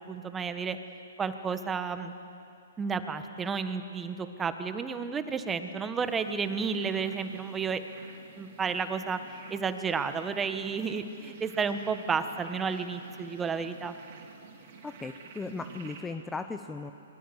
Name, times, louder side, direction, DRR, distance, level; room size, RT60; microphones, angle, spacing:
voice 1, 0.1-0.8 1.2-2.1 2.8-7.8 8.4-9.2 9.5-13.9, right 5 dB, 15° right, 9 dB, 1.5 m, -32 dB
sound 1, 6.0-16.0, right 5 dB, 50° right, 4.2 m, -51 dB
voice 2, 14.8-16.9, left 4 dB, 10° left, 8 dB, 0.9 m, -37 dB
25.5 x 22.5 x 8.2 m, 2.6 s
hypercardioid pair, 130°, 0 cm